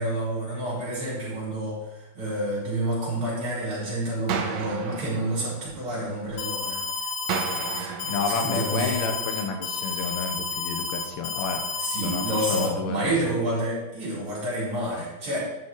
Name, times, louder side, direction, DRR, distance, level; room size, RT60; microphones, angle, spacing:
voice 1, 0.0-6.8 7.7-9.0 11.8-15.4, right 1 dB, 35° right, -6 dB, 4.9 m, -29 dB
sound 1, 4.3-6.3 7.3-9.3, right 7 dB, 75° right, 2.3 m, -34 dB
Alarm, 6.4-12.7, left 4 dB, 65° left, 1.8 m, -31 dB
voice 2, 8.0-11.6 12.0-13.4, left 5 dB, 85° left, 4 dB, 2.9 m, -30 dB
11.0 x 6.1 x 4.7 m, 0.98 s
omnidirectional pair, 4.3 m